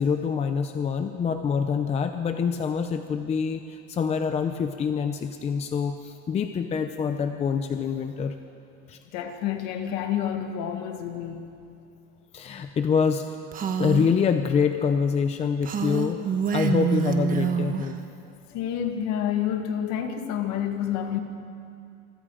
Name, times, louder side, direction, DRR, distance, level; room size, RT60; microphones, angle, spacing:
voice 1, 0.0-8.3 8.9-9.0 12.3-13.2 13.8-16.2 16.5-18.0, left 6 dB, 15° left, 7 dB, 0.7 m, -25 dB
voice 2, 9.1-11.5 18.5-21.2, left 9 dB, 50° left, 5 dB, 2.3 m, -29 dB
Female speech woman speaking, 13.5-14.1 15.6-17.9, right 7 dB, 25° right, 1.3 m, -26 dB
27.5 x 24.0 x 5.0 m, 2.5 s
supercardioid pair, 160°, 36 cm